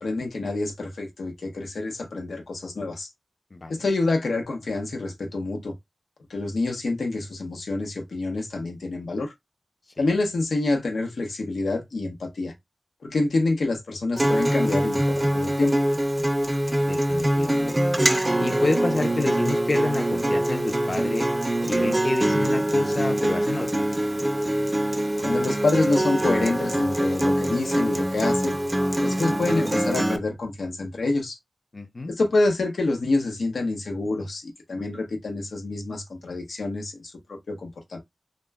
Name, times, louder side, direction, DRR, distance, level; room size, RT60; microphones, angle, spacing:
voice 1, 0.0-3.1 3.7-5.7 6.3-9.3 10.0-12.5 13.0-15.7 25.2-28.6 29.0-31.4 32.1-38.0, left 2 dB, 90° left, 0.7 m, -27 dB
Acoustic guitar, 14.2-30.2, right 1 dB, 20° right, 0.4 m, -24 dB
voice 2, 16.9-17.9 18.4-21.3 21.7-23.9 31.7-32.1, left 2 dB, 40° left, 0.5 m, -29 dB
2.1 x 2.1 x 3.4 m
wide cardioid pair, 90°, 0 cm